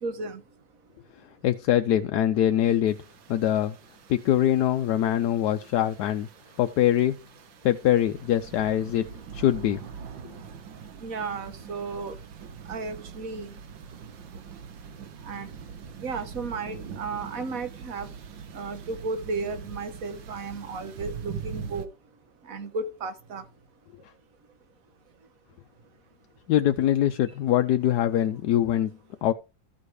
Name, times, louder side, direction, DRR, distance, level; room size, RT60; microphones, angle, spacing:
voice 1, 0.0-0.4 11.0-12.1 12.7-13.5 15.2-15.5 16.0-18.1 18.5-21.9 22.5-23.4, right 4 dB, 50° right, 1.3 m, -34 dB
voice 2, 1.4-3.0 3.3-3.7 4.1-6.3 6.6-7.2 7.6-9.8 26.5-29.0 29.2-29.3, left 11 dB, 70° left, 1.1 m, -23 dB
sound 1, 2.9-21.9, right 6 dB, 75° right, 1.9 m, -43 dB
14.0 x 4.9 x 4.8 m
omnidirectional pair, 2.1 m